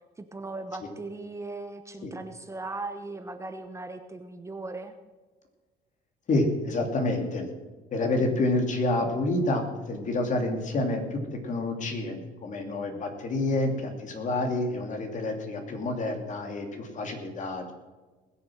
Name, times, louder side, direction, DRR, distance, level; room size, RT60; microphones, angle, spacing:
voice 1, 0.2-4.9, right 2 dB, 15° right, 7 dB, 1.0 m, -38 dB
voice 2, 6.3-7.5 7.9-17.7, left 2 dB, 45° left, 4 dB, 2.7 m, -28 dB
20.0 x 7.0 x 6.3 m, 1.3 s
cardioid pair, 110°, 17 cm